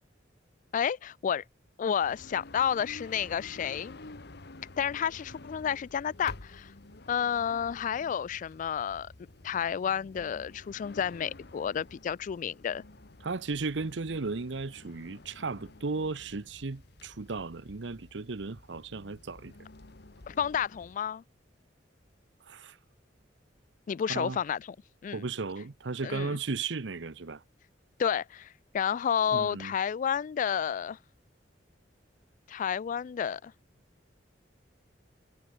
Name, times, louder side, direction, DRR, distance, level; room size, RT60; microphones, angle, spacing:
voice 1, 0.7-1.4 1.8-4.0 4.8-6.7 7.1-9.1 9.4-12.8 20.3-21.2 23.9-24.8 25.0-25.3 26.0-26.4 28.0-31.0 32.5-33.5, left 8 dB, 45° left, 0.3 m, -31 dB
sound 1, 2.0-21.0, left 2 dB, 65° left, 1.4 m, -50 dB
voice 2, 13.2-19.5 22.5-22.8 24.1-24.4 25.1-27.4 29.3-29.7, right 4 dB, 75° right, 0.8 m, -35 dB
head